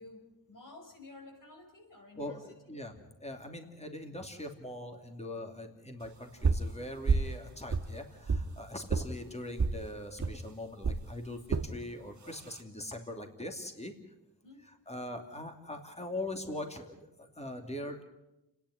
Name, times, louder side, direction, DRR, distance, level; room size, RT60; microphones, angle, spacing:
voice 1, 0.0-2.4 14.4-14.6, left 2 dB, 60° left, 3 dB, 5.6 m, -52 dB
voice 2, 2.1-13.9 14.6-18.0, left 1 dB, 15° left, 4 dB, 2.7 m, -42 dB
sound 1, 6.4-6.7 7.1-7.4 7.7-8.5 8.9-9.1 9.6-9.8 10.2-10.4 10.8-11.0 11.5-11.7 12.3-12.6, right 4 dB, 50° right, 1.8 m, -29 dB
30.0 x 10.5 x 10.0 m, 0.96 s
wide cardioid pair, 90°, 37 cm